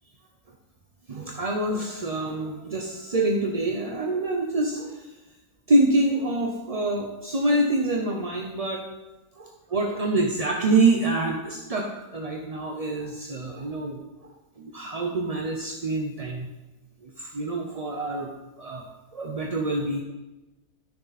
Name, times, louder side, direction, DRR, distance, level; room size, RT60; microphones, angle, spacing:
voice 1, 1.1-5.1 5.7-8.8 9.3-11.9 12.1-14.0 14.6-16.5 17.0-18.3 18.6-18.8 19.1-20.0, right 2 dB, 35° right, 0 dB, 0.6 m, -26 dB
12.5 x 6.7 x 4.1 m, 1.1 s
omnidirectional pair, 1.7 m